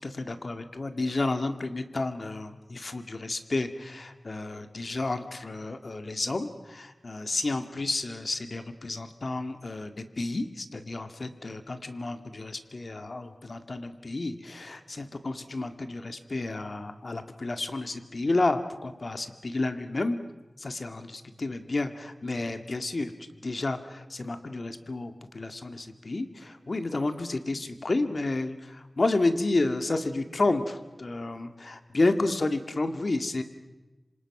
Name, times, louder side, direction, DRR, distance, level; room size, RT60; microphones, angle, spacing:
voice 1, 0.0-20.2 20.6-23.1 23.4-33.4, left 2 dB, 60° left, 8 dB, 1.9 m, -31 dB
26.5 x 26.5 x 6.0 m, 1.1 s
wide cardioid pair, 60°, 0 cm